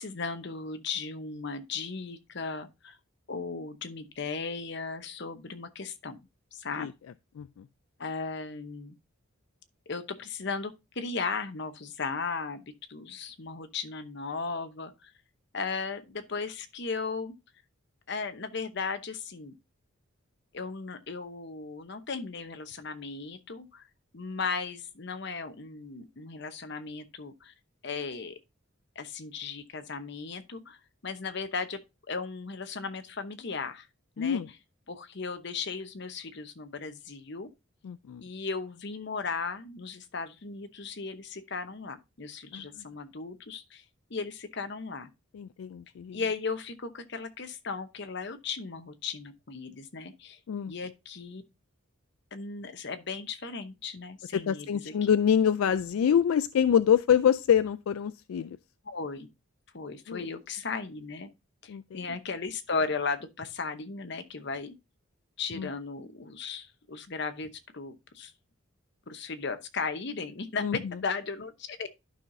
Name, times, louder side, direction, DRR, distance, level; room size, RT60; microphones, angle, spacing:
voice 1, 0.0-3.0 3.3-6.9 8.0-8.9 9.9-15.1 15.5-17.3 18.1-19.5 20.5-23.9 24.1-27.5 27.8-28.4 29.0-31.8 32.1-33.9 34.2-34.4 34.9-37.5 38.2-43.8 44.1-45.1 46.1-50.4 50.7-51.4 52.3-54.9 58.9-59.3 59.7-61.3 61.6-64.7 65.4-68.3 69.1-71.9, left 4 dB, 55° left, 0.9 m, -36 dB
voice 2, 7.4-7.7 34.2-34.5 37.8-38.2 42.5-42.8 45.3-46.2 50.5-50.7 54.3-58.6 60.1-60.3 61.7-62.2 65.6-65.7 70.6-70.8, left 8 dB, 80° left, 0.3 m, -26 dB
11.5 x 5.7 x 2.6 m
head